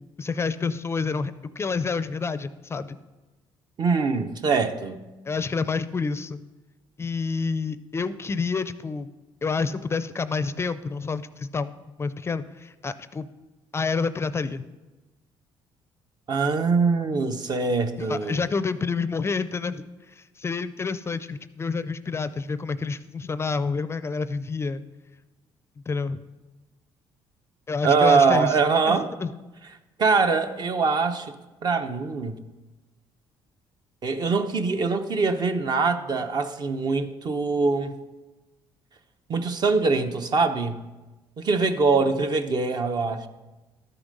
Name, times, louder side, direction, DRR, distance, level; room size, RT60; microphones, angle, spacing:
voice 1, 0.0-3.0 5.3-6.4 7.0-9.1 9.4-13.3 13.7-14.7 18.0-24.8 25.9-26.2 27.7-28.6 28.9-29.3, left 4 dB, 25° left, 14 dB, 0.4 m, -28 dB
voice 2, 3.8-5.0 16.3-18.4 27.8-29.1 30.0-31.3 31.6-32.4 34.0-38.0 39.3-40.8 41.4-43.3, right 4 dB, 45° right, 8 dB, 0.9 m, -23 dB
12.5 x 7.0 x 5.3 m, 1.1 s
cardioid pair, 90°, 10 cm